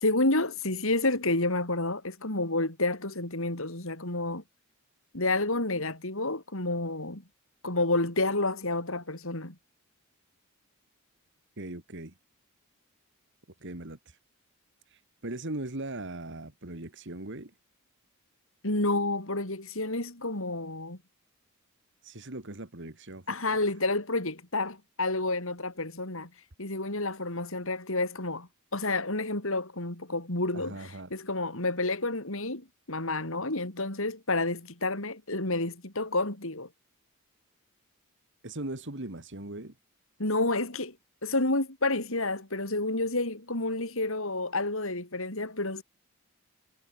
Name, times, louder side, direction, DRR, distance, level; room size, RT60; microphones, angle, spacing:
voice 1, 0.0-4.4 5.1-7.2 7.6-9.5 18.6-21.0 23.3-26.3 26.6-36.7 40.2-40.9 41.2-45.8, left 2 dB, 65° left, 4.6 m, -30 dB
voice 2, 11.6-12.1 13.6-14.2 14.9-17.5 22.0-23.2 23.5-23.6 30.5-31.1 38.4-39.7, right 2 dB, 55° right, 2.4 m, -39 dB
head